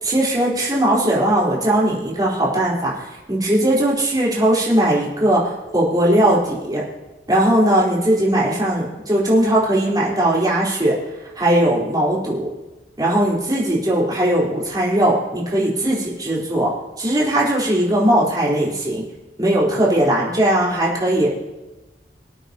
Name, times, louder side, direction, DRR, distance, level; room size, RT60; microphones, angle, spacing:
voice 1, 0.0-3.0 3.3-6.8 7.3-11.0 11.4-12.5 13.0-16.7 17.0-19.0 19.4-21.3, right 1 dB, 25° right, -6 dB, 4.0 m, -19 dB
24.0 x 9.0 x 2.9 m, 1.1 s
head